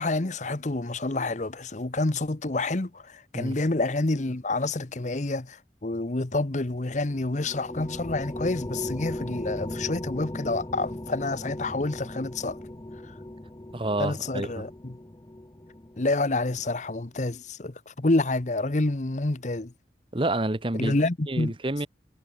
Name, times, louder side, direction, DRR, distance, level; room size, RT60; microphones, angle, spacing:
voice 1, 0.0-12.6 14.0-14.9 16.0-19.7 20.8-21.5, left 2 dB, 45° left, 1.0 m, -28 dB
sound 1, 6.9-16.7, left 1 dB, 20° left, 0.8 m, -38 dB
voice 2, 13.7-14.6 20.1-21.0 21.3-21.9, right 2 dB, 30° right, 1.1 m, -28 dB
head